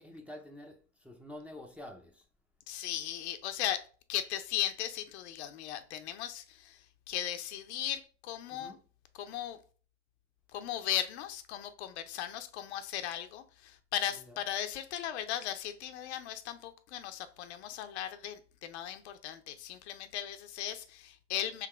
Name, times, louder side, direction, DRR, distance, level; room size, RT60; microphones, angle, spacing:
voice 1, 0.0-2.3 8.5-8.8 14.1-14.4, left 1 dB, 5° right, 0.5 m, -48 dB
voice 2, 2.7-3.8 4.1-8.8 9.1-9.6 10.5-21.7, left 11 dB, 65° left, 0.7 m, -37 dB
3.8 x 2.9 x 4.4 m
hypercardioid pair, 110°, 36 cm